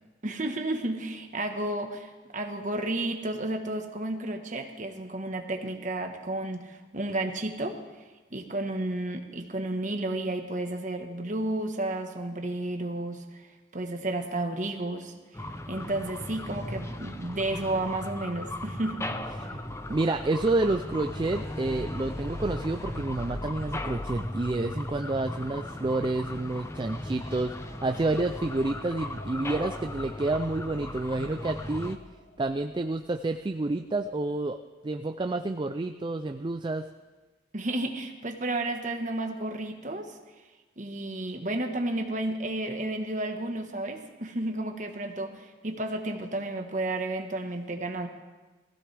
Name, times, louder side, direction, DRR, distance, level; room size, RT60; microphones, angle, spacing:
voice 1, 0.2-7.8 8.3-13.4 13.7-15.1 15.7-19.2 37.5-40.1 40.8-48.1, right 1 dB, 40° right, 4 dB, 1.3 m, -32 dB
sound 1, 15.3-32.0, left 1 dB, 15° left, 0.6 m, -37 dB
sound 2, 18.8-33.4, left 1 dB, 50° left, 1.3 m, -45 dB
voice 2, 19.9-32.0 32.4-34.6 34.8-36.8, right 2 dB, 25° right, 7 dB, 0.4 m, -29 dB
20.0 x 15.5 x 3.4 m, 1.2 s
head